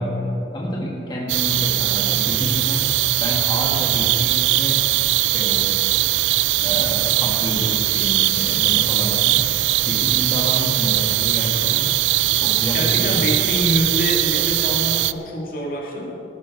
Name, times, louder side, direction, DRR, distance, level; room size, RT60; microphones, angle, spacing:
voice 1, 0.0-2.9 3.2-4.9 5.2-5.9 6.6-9.4 9.8-12.0 12.4-13.3, equal, 25° left, -3 dB, 2.0 m, -28 dB
sound 1, 1.3-15.1, right 16 dB, 85° right, 0.3 m, -20 dB
voice 2, 12.7-16.2, left 1 dB, 50° left, -2 dB, 2.1 m, -25 dB
17.5 x 11.0 x 4.2 m, 2.9 s
head